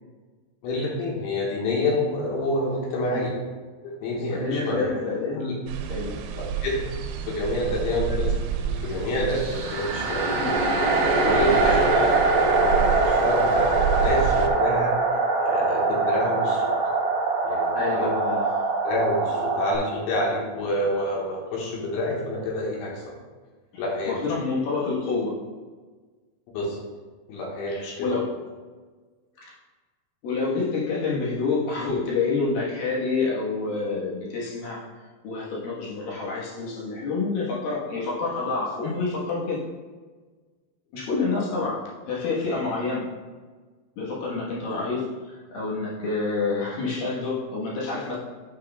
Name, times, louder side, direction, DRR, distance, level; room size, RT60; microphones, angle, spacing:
voice 1, 0.6-3.4 3.8-4.9 5.4-5.6 6.6-6.9 7.3-8.3 8.6-10.5 11.1-14.9 15.4-16.7 17.4-18.1 18.9-23.1 23.8-24.2 26.5-26.8 27.3-28.1, left 1 dB, 85° left, -3 dB, 3.7 m, -28 dB
voice 2, 4.3-5.4 5.9-6.2 8.1-8.2 10.3-10.5 11.4-11.6 17.7-18.5 24.1-25.3 27.7-28.3 29.4-29.5 30.2-34.8 35.2-39.6 40.9-43.0 44.0-45.0 45.3-48.2, left 4 dB, 65° left, -5 dB, 2.5 m, -28 dB
sound 1, 5.7-14.5, right 8 dB, 85° right, 3.0 m, -30 dB
sound 2, 9.3-19.8, right 3 dB, 70° right, 2.2 m, -23 dB
9.3 x 6.1 x 2.3 m, 1.4 s
omnidirectional pair, 5.3 m